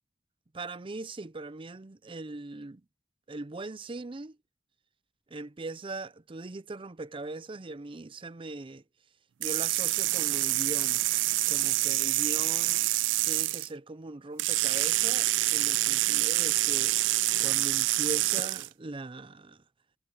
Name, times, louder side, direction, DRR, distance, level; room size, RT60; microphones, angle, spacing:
voice 1, 0.5-2.8 3.3-4.4 5.3-8.8 9.4-11.0 11.5-12.8 13.2-16.9 17.4-19.6, right 2 dB, 30° right, 0.6 m, -40 dB
sound 1, 9.4-13.7 14.4-18.7, right 18 dB, 90° right, 0.4 m, -27 dB
head